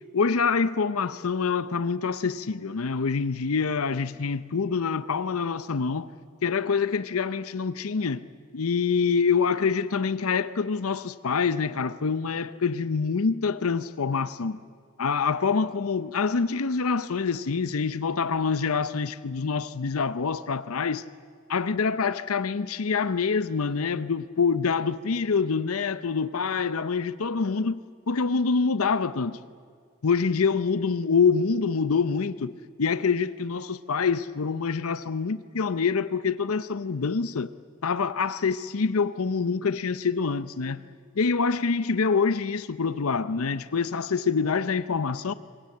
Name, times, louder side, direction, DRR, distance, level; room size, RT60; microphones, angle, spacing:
voice 1, 0.1-6.1 6.4-8.2 8.5-14.6 15.0-21.0 21.5-29.4 30.0-32.5 32.8-37.5 37.8-40.8 41.2-45.3, left 5 dB, 75° left, 0.7 m, -26 dB
25.5 x 22.0 x 8.5 m
head